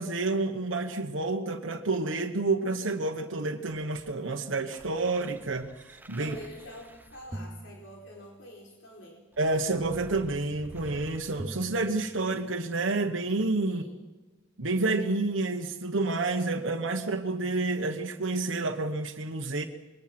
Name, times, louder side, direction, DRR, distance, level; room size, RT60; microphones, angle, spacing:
voice 1, 0.0-6.3 9.4-13.8 14.6-19.6, right 3 dB, 85° right, 3 dB, 1.3 m, -29 dB
sound 1, 4.0-8.6 9.3-12.6 13.4-13.5, right 1 dB, 10° right, 0.9 m, -46 dB
voice 2, 6.2-9.2 13.6-14.0, equal, 75° left, -1 dB, 4.6 m, -46 dB
26.0 x 21.5 x 6.1 m, 1.2 s
head